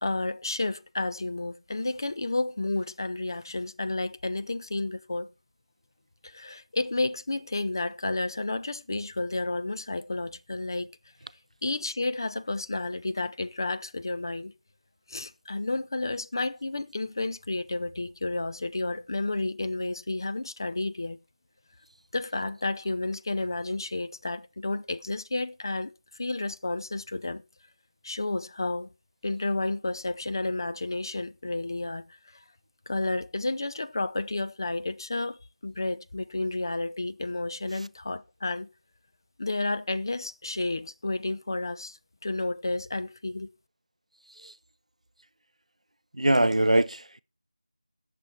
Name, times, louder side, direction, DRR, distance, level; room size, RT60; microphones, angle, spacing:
voice 1, 0.0-5.3 6.2-11.0 11.6-14.5 15.1-21.2 22.1-27.4 28.0-28.9 29.2-32.4 32.9-38.7 39.4-43.5, left 2 dB, 35° left, 0.6 m, -31 dB
voice 2, 46.1-47.2, right 1 dB, 80° right, 0.6 m, -23 dB
16.5 x 6.8 x 4.3 m
figure-of-eight pair, 170°, 4 cm